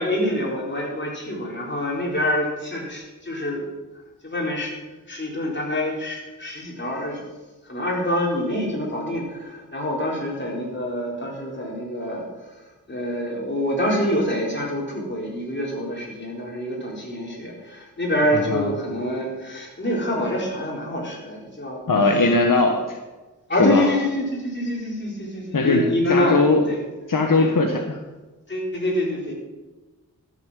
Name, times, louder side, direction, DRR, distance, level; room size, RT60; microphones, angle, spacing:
voice 1, 0.0-3.6 4.2-4.7 5.1-7.2 7.6-12.6 12.9-21.8 23.5-26.4 26.7-26.8 27.4-27.5 28.5-29.3, left 1 dB, 35° left, -2 dB, 4.2 m, -26 dB
voice 2, 18.3-18.7 21.9-23.0 23.5-23.9 25.5-25.8 26.1-26.7 27.1-28.0, left 3 dB, 70° left, 2 dB, 1.4 m, -19 dB
13.0 x 7.3 x 7.5 m, 1.2 s
wide cardioid pair, 85°, 33 cm